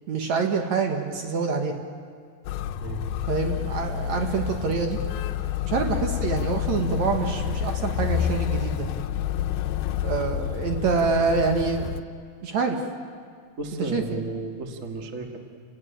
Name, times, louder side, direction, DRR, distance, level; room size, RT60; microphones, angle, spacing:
voice 1, 0.1-1.7 3.3-5.0 5.7-8.9 10.0-11.9 12.4-12.8 13.8-14.0, right 4 dB, 60° right, 4 dB, 2.4 m, -26 dB
Motor vehicle (road), 2.4-12.0, left 9 dB, 80° left, 2.5 m, -29 dB
voice 2, 13.6-15.4, right 2 dB, 35° right, 3 dB, 1.3 m, -33 dB
29.0 x 18.5 x 8.9 m, 2.1 s
omnidirectional pair, 4.3 m